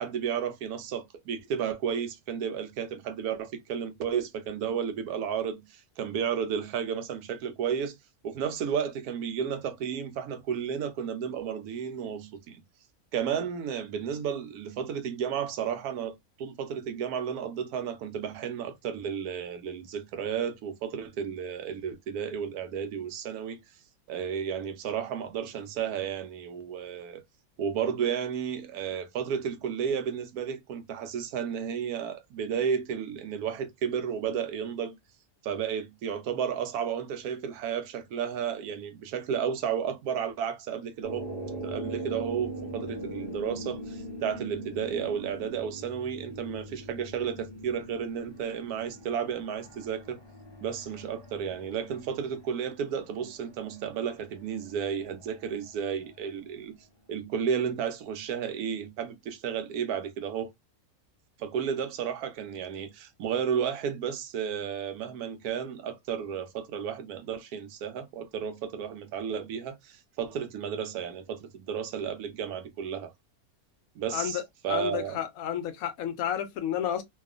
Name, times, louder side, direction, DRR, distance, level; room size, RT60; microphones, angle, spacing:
voice 1, 0.0-8.0 8.2-12.6 13.1-23.6 24.1-27.2 27.6-35.0 35.4-41.3 41.5-50.2 50.6-56.7 57.1-60.5 61.4-73.1 74.0-75.2, right 7 dB, 85° right, 1.1 m, -32 dB
sound 1, 41.0-56.5, right 1 dB, 25° left, 0.5 m, -42 dB
voice 2, 74.1-74.4 74.7-77.0, left 10 dB, 75° left, 1.0 m, -31 dB
2.7 x 2.3 x 2.3 m
omnidirectional pair, 1.6 m